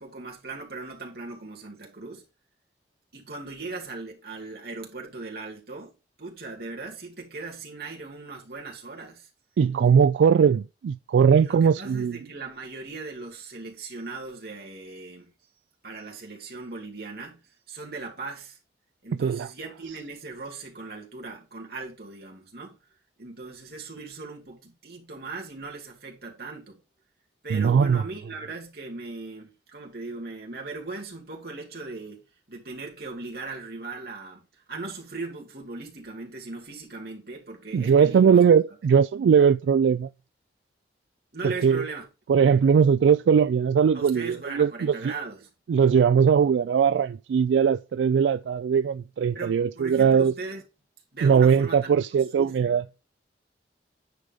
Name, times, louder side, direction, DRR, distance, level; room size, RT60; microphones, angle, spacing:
voice 1, 0.0-2.2 3.1-5.9 6.2-9.3 11.4-15.3 15.8-18.6 19.0-22.8 23.2-26.8 27.4-32.2 32.5-38.4 41.3-42.0 43.9-45.5 49.3-50.6 51.1-52.1 52.4-52.8, right 3 dB, 60° right, 2.6 m, -38 dB
voice 2, 9.6-12.2 19.1-19.5 27.5-28.0 37.7-40.1 41.4-41.8 42.3-45.1 45.7-50.3 51.2-52.8, right 7 dB, 85° right, 0.3 m, -20 dB
9.7 x 4.9 x 3.9 m
head